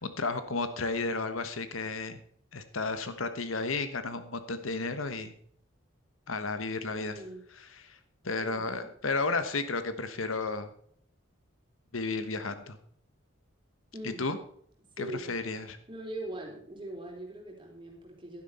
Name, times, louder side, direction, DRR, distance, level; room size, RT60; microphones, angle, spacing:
voice 1, 0.0-2.2 2.5-5.3 6.3-7.2 7.8-8.0 8.2-10.7 11.9-12.8 14.2-14.4 15.0-15.8, left 3 dB, 85° left, 10 dB, 1.2 m, -33 dB
voice 2, 7.0-7.4 8.4-8.9 13.9-14.4 15.0-15.3 15.9-18.4, right 1 dB, 25° right, -1 dB, 3.7 m, -41 dB
11.5 x 10.5 x 4.3 m, 0.63 s
head